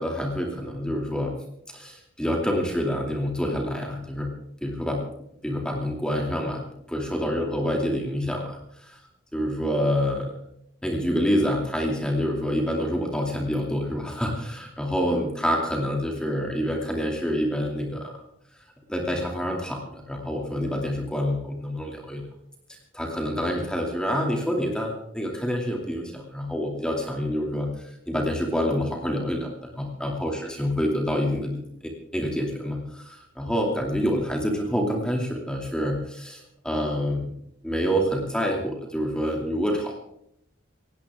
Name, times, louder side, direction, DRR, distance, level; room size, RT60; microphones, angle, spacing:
voice 1, 0.0-1.3 1.7-4.3 4.6-5.0 5.4-6.6 6.9-9.0 9.3-10.3 10.8-18.1 18.9-22.2 22.7-37.3 37.6-39.9, equal, 5° left, 0 dB, 2.6 m, -27 dB
19.0 x 16.5 x 3.7 m, 0.72 s
head